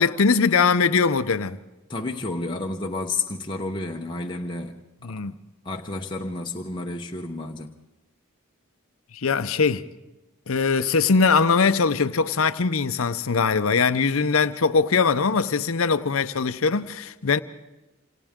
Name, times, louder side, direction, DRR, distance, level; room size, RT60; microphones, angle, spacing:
voice 1, 0.0-1.6 5.0-5.3 9.1-9.8 10.5-17.4, left 5 dB, 70° left, 0.7 m, -21 dB
voice 2, 1.9-4.8 5.1-5.2 5.6-7.7, left 2 dB, 20° left, 0.9 m, -31 dB
27.5 x 27.0 x 3.7 m
head